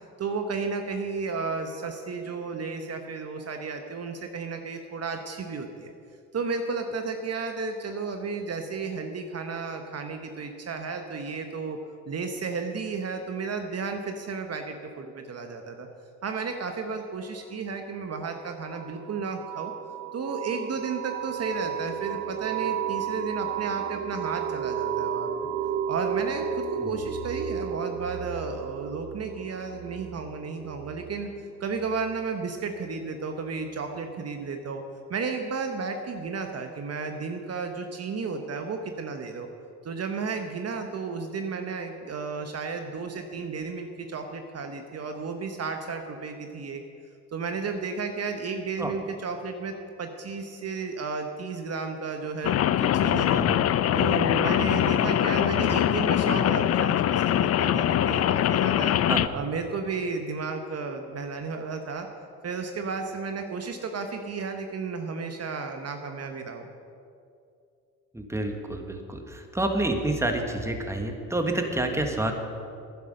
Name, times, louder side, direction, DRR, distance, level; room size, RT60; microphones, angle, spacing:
voice 1, 0.2-5.9 6.3-11.8 12.1-15.9 16.2-19.7 20.1-25.5 25.9-31.3 31.6-34.8 35.1-39.5 39.8-46.8 47.3-53.4 53.9-59.0 59.3-62.1 62.4-66.7, right 4 dB, 45° right, 5 dB, 1.1 m, -33 dB
sound 1, 18.2-32.7, right 8 dB, 90° right, 0.7 m, -33 dB
Rain, 52.4-59.3, left 11 dB, 45° left, 0.5 m, -23 dB
voice 2, 68.1-72.3, right 1 dB, 10° right, 4 dB, 1.6 m, -28 dB
11.0 x 10.0 x 6.5 m, 2.4 s
supercardioid pair, 75°, 35 cm